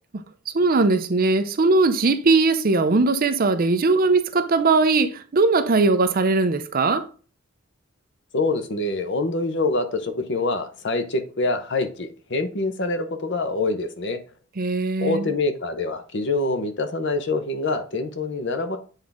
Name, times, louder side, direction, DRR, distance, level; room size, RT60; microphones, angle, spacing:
voice 1, 0.5-7.1 14.6-15.3, right 3 dB, 45° right, 0.5 m, -20 dB
voice 2, 8.3-14.2 15.0-18.8, left 3 dB, 55° left, 0.9 m, -25 dB
8.0 x 3.7 x 3.6 m
head